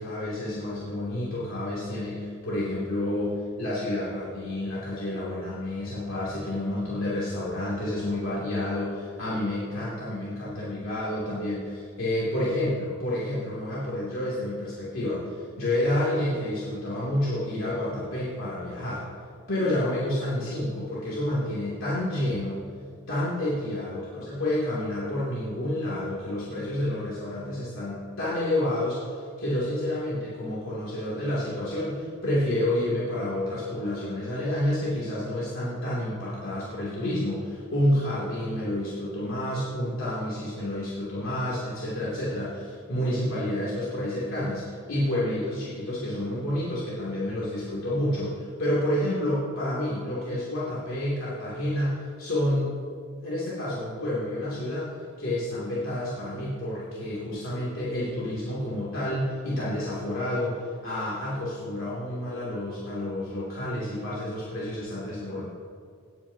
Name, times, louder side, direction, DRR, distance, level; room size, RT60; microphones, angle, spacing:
voice 1, 0.0-19.0 19.5-22.6 23.1-52.7 53.2-65.5, left 1 dB, 75° left, -8 dB, 2.9 m, -29 dB
18.0 x 9.5 x 2.9 m, 2.3 s
head